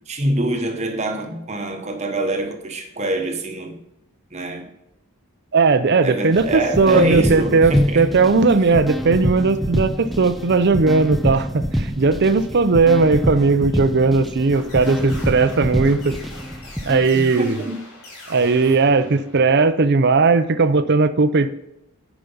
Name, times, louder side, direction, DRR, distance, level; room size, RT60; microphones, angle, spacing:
voice 1, 0.0-3.8 4.3-4.7 6.0-8.1 17.1-17.8, right 1 dB, 30° right, 1.0 m, -24 dB
voice 2, 5.5-16.2 16.9-17.6 18.3-21.5, right 4 dB, 50° right, 0.6 m, -17 dB
sound 1, 6.3-17.1, equal, ahead, 0.4 m, -26 dB
sound 2, 14.5-19.7, left 2 dB, 70° left, 3.9 m, -42 dB
10.5 x 5.0 x 5.5 m
head